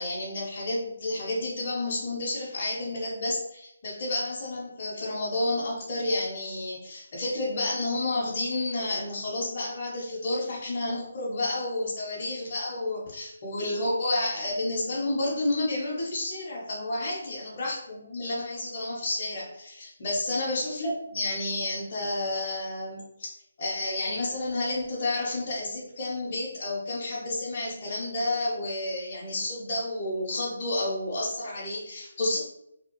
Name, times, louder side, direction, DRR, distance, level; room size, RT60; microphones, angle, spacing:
voice 1, 0.0-23.0 23.6-32.4, left 2 dB, 30° left, -7 dB, 0.7 m, -30 dB
2.8 x 2.3 x 2.9 m, 0.79 s
hypercardioid pair, 170°, 0 cm